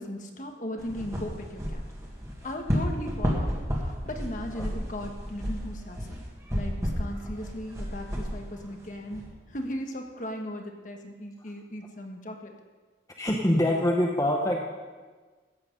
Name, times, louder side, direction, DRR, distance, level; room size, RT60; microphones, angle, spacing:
voice 1, 0.0-1.8 2.4-3.5 4.0-6.2 6.5-9.2 9.5-12.5, equal, 45° left, 3 dB, 1.3 m, -37 dB
sound 1, 0.8-9.3, equal, 15° right, 1.9 m, -32 dB
voice 2, 13.2-14.6, left 1 dB, 20° left, 0 dB, 0.8 m, -25 dB
14.5 x 8.7 x 5.3 m, 1.4 s
head